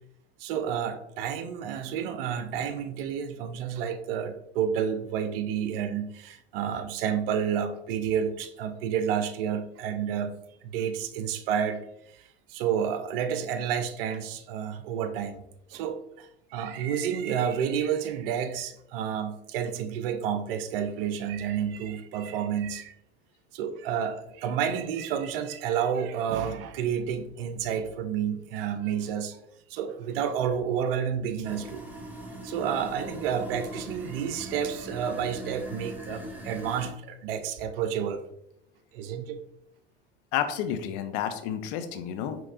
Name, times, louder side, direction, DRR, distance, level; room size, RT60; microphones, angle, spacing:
voice 1, 0.4-10.3 10.6-11.8 12.1-22.9 23.5-29.4 29.7-31.8 32.4-38.2 38.9-39.4, right 8 dB, 60° right, 9 dB, 0.5 m, -30 dB
sound 1, 31.4-36.9, equal, 5° right, 0.8 m, -41 dB
voice 2, 40.3-42.4, left 9 dB, 50° left, 9 dB, 0.5 m, -30 dB
5.1 x 2.9 x 2.5 m, 0.78 s
figure-of-eight pair, 70°, 33 cm